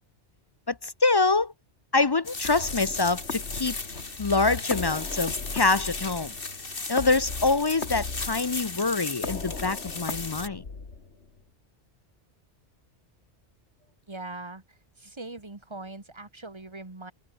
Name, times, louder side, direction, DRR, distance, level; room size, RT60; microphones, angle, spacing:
voice 1, 0.7-1.5 1.9-3.8 4.2-6.3 6.9-10.6, left 3 dB, 35° left, 0.4 m, -25 dB
sound 1, 2.2-10.5, left 3 dB, 55° left, 2.5 m, -36 dB
sound 2, 2.4-11.4, left 4 dB, 75° left, 2.6 m, -38 dB
voice 2, 14.1-14.6 15.0-17.1, right 2 dB, 25° right, 2.0 m, -41 dB
omnidirectional pair, 1.1 m